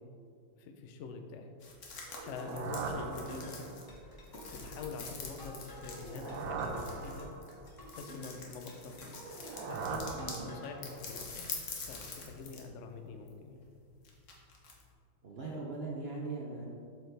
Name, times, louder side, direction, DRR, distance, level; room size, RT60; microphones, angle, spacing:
voice 1, 0.6-1.5 2.2-3.7 4.5-7.3 8.0-9.2 9.7-11.5 11.9-13.6, left 4 dB, 80° left, 5 dB, 0.6 m, -45 dB
sound 1, 1.6-10.4 10.8-12.7 13.0-14.8, left 4 dB, 50° left, 1.1 m, -46 dB
sound 2, 2.1-3.9 5.8-7.7 9.1-11.0, right 4 dB, 85° right, 1.4 m, -41 dB
sound 3, 2.2-10.8, equal, 20° left, 0.6 m, -51 dB
voice 2, 10.1-10.5 15.2-16.7, right 3 dB, 70° right, -3 dB, 0.5 m, -40 dB
7.8 x 4.6 x 3.3 m, 2.3 s
omnidirectional pair, 2.0 m